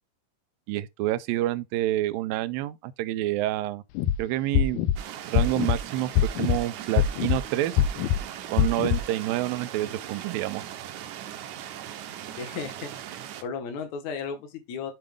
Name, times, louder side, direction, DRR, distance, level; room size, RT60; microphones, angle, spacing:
voice 1, 0.7-3.8 4.2-4.8 5.2-6.1 6.4-7.8 8.5-10.6, right 15 dB, 90° right, 2.3 m, -28 dB
sound 1, 4.0-4.2 4.5-5.0 5.4-5.8 6.2-6.6 7.0-7.4 7.8-8.2 8.6-9.0, left 10 dB, 85° left, 1.8 m, -22 dB
sound 2, 5.0-13.4, right 11 dB, 75° right, 2.0 m, -39 dB
voice 2, 12.4-12.9 13.4-14.9, left 6 dB, 65° left, 2.4 m, -34 dB
7.6 x 4.8 x 3.5 m
omnidirectional pair, 4.0 m